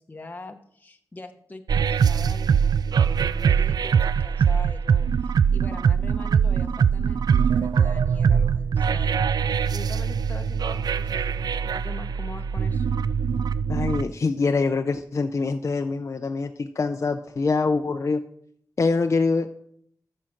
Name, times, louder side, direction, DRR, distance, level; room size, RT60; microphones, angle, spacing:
voice 1, 0.0-12.9, left 2 dB, 25° left, 4 dB, 1.0 m, -42 dB
sound 1, 1.7-14.0, right 7 dB, 75° right, 0.4 m, -22 dB
voice 2, 13.7-18.2 18.8-19.6, left 4 dB, 45° left, 6 dB, 0.6 m, -24 dB
14.0 x 6.5 x 5.9 m, 0.65 s
wide cardioid pair, 105°, 7 cm